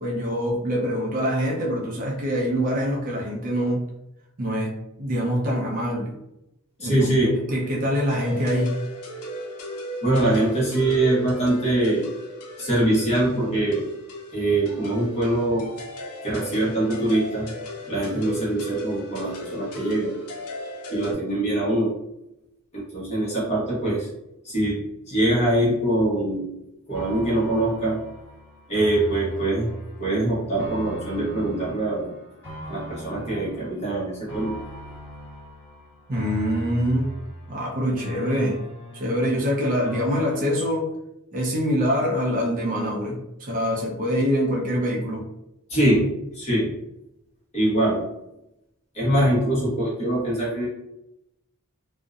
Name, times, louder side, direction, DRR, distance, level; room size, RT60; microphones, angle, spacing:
voice 1, 0.0-3.8 4.4-6.1 6.8-7.1 7.5-8.7 36.1-37.1 37.5-38.6 38.9-40.9 41.3-45.3, equal, 40° right, -2 dB, 0.4 m, -25 dB
voice 2, 6.8-7.4 10.0-12.1 12.6-13.9 14.3-15.7 16.2-17.5 17.9-20.1 20.9-21.9 22.7-24.1 24.4-24.8 25.1-26.5 26.9-28.0 28.7-29.7 30.0-32.1 32.7-34.6 45.7-46.1 46.3-46.7 47.5-48.0 48.9-50.7, right 1 dB, 30° left, -6 dB, 0.9 m, -23 dB
sound 1, 8.1-21.1, equal, 85° left, 0.5 m, -36 dB
sound 2, 26.9-40.5, equal, 10° left, 1.4 m, -39 dB
2.6 x 2.0 x 2.3 m, 0.87 s
head